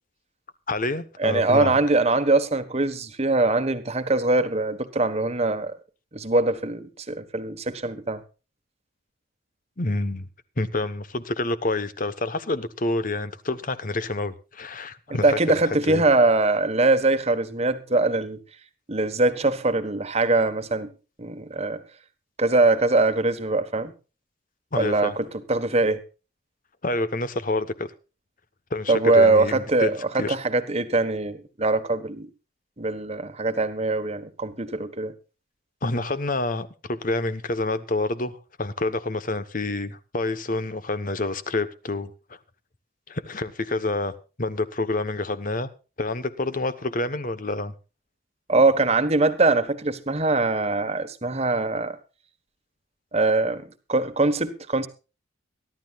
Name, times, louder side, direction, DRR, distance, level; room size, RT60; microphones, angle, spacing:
voice 1, 0.7-1.7 9.8-10.3 10.6-15.4 15.9-16.0 24.7-25.2 26.8-27.9 28.7-30.4 35.8-42.1 43.1-44.1 44.4-45.7 46.0-47.7, left 2 dB, 40° left, 1.1 m, -28 dB
voice 2, 1.2-5.7 6.1-8.2 15.1-18.4 18.9-20.9 21.2-21.8 22.4-23.9 24.8-26.0 28.9-32.3 32.8-35.1 48.5-52.0 53.1-54.9, right 2 dB, 30° right, 1.3 m, -22 dB
23.5 x 12.0 x 2.4 m
head